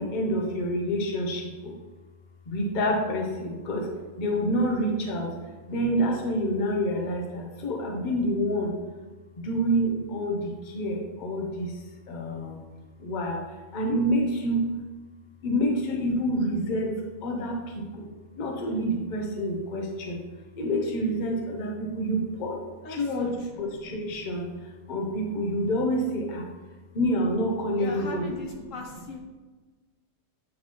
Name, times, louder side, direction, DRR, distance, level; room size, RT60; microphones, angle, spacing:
voice 1, 0.0-1.8 2.5-3.9 4.2-5.3 5.7-8.7 9.4-12.6 13.0-14.7 15.4-16.9 17.2-18.1 18.4-20.2 20.6-22.6 22.9-23.3 23.6-24.5 24.9-26.5 26.9-28.5, equal, 40° left, 1 dB, 0.9 m, -28 dB
voice 2, 22.8-23.6 27.8-29.2, left 3 dB, 65° left, 1 dB, 1.0 m, -39 dB
8.8 x 3.9 x 3.0 m, 1.3 s
omnidirectional pair, 1.5 m